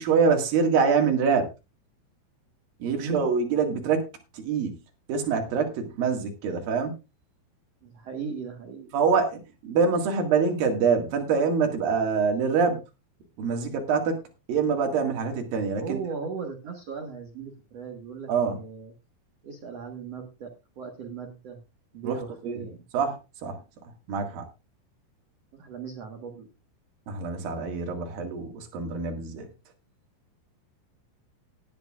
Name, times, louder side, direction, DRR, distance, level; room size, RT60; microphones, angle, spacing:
voice 1, 0.0-1.5 2.8-4.1 4.3-4.8 5.1-6.9 8.9-12.8 13.4-14.2 14.5-16.0 18.3-18.6 22.0-22.2 22.4-22.6 22.9-23.6 24.1-24.5 27.1-29.5, right 5 dB, 55° right, 3 dB, 3.3 m, -25 dB
voice 2, 2.9-3.2 7.8-8.9 15.8-18.9 19.4-21.6 21.9-22.8 25.5-26.5, right 6 dB, 80° right, 3 dB, 1.4 m, -37 dB
18.0 x 10.5 x 2.4 m, 0.27 s
omnidirectional pair, 5.4 m